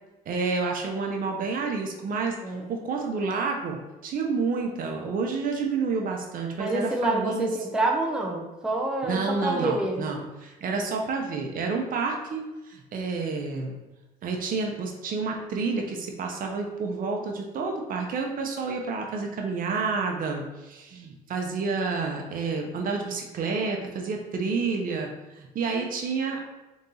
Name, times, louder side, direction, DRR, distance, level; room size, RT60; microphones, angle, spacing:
voice 1, 0.3-2.4 2.7-7.5 9.0-13.7 14.2-25.1 25.4-26.4, right 4 dB, 55° right, 2 dB, 0.8 m, -29 dB
voice 2, 6.6-10.1, right 2 dB, 5° right, -1 dB, 0.7 m, -27 dB
4.0 x 2.7 x 3.8 m, 1.1 s
cardioid pair, 110°, 17 cm